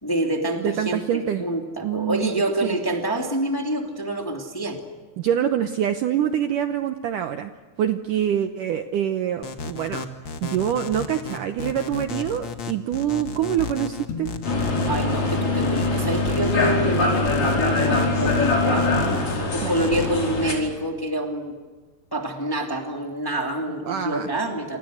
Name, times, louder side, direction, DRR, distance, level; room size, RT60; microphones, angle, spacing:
voice 1, 0.0-4.8 14.9-19.1 19.4-21.5 22.1-24.8, right 1 dB, 5° left, 2 dB, 1.9 m, -27 dB
voice 2, 0.6-1.4 1.8-2.8 5.2-7.5 7.8-10.1 10.4-14.3 19.6-19.9 23.9-24.3, right 10 dB, 70° right, 8 dB, 2.1 m, -25 dB
sound 1, 9.4-20.1, left 5 dB, 50° left, 1.4 m, -33 dB
sound 2, 14.1-20.7, left 4 dB, 90° left, 4.4 m, -43 dB
sound 3, 14.4-20.5, left 2 dB, 35° left, 5.7 m, -23 dB
28.0 x 28.0 x 6.5 m, 1.3 s
omnidirectional pair, 4.6 m